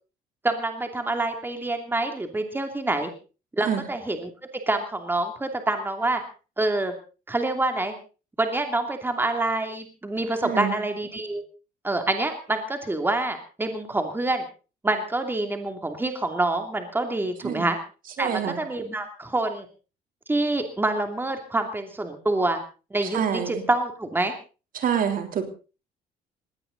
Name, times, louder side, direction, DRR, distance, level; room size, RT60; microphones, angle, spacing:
voice 1, 0.4-3.1 3.6-4.3 4.7-6.2 6.6-6.9 7.3-7.9 8.4-11.4 11.8-14.4 14.8-17.8 18.2-19.7 20.3-22.6 22.9-24.3, right 2 dB, 10° right, 6 dB, 2.8 m, -26 dB
voice 2, 10.4-10.7 17.4-17.7 18.2-18.6 23.0-23.6 24.7-25.4, right 8 dB, 55° right, 7 dB, 3.4 m, -26 dB
20.0 x 17.0 x 4.0 m, 0.35 s
cardioid pair, 110°, 17 cm